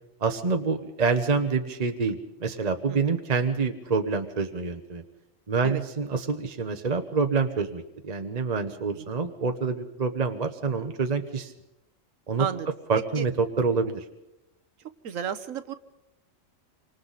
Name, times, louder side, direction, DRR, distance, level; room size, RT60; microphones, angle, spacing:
voice 1, 0.2-5.0 5.5-11.5 12.3-12.5 12.9-14.0, right 4 dB, 35° right, 6 dB, 0.9 m, -27 dB
voice 2, 8.9-9.3 12.4-12.7 13.2-13.3 15.0-15.8, right 8 dB, 75° right, 11 dB, 1.4 m, -33 dB
27.5 x 25.5 x 4.1 m, 0.90 s
omnidirectional pair, 1.4 m